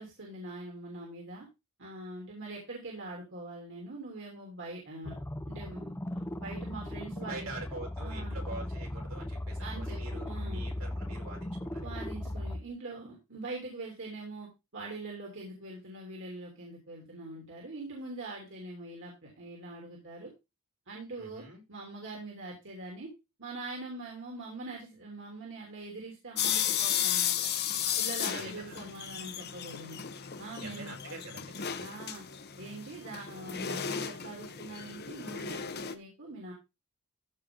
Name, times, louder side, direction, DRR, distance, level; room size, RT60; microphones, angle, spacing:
voice 1, 0.0-1.5 1.8-5.2 5.5-7.5 8.0-8.3 9.6-10.6 11.8-20.3 20.9-21.4 21.7-23.1 23.4-27.5 28.0-30.0 30.4-30.9 31.8-32.2 32.6-36.5, right 2 dB, 60° right, -1 dB, 3.3 m, -43 dB
sound 1, 5.0-12.6, left 1 dB, 10° left, 0.6 m, -37 dB
voice 2, 7.2-12.0 21.2-21.6 28.3-28.8 30.6-31.9, right 2 dB, 80° right, -1 dB, 5.0 m, -45 dB
sound 2, 26.4-35.9, left 9 dB, 50° left, 1.0 m, -34 dB
14.5 x 5.4 x 3.9 m, 0.25 s
head